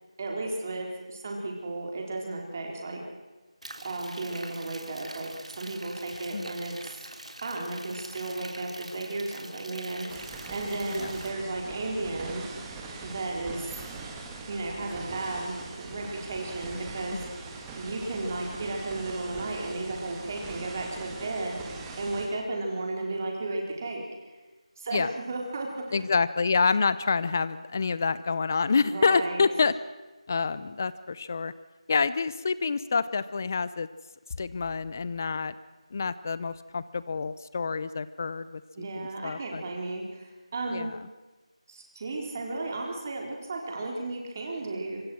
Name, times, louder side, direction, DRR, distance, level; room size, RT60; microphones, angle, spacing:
voice 1, 0.2-3.0 3.8-7.1 7.4-12.4 13.0-13.9 14.5-17.2 17.8-24.0 24.8-26.0 28.8-29.4 38.8-40.9 41.7-45.0, right 2 dB, 25° right, 1 dB, 3.9 m, -34 dB
sound 1, 3.6-11.3, right 1 dB, 85° right, 3.5 m, -44 dB
sound 2, 10.1-22.3, right 4 dB, 10° right, 1.7 m, -42 dB
voice 2, 25.9-29.7 30.3-31.5 31.9-33.9 34.4-35.5 35.9-38.6 39.0-39.6 40.7-41.0, left 4 dB, 25° left, 16 dB, 0.7 m, -27 dB
25.5 x 25.0 x 6.3 m, 1.2 s
figure-of-eight pair, 170°, 4 cm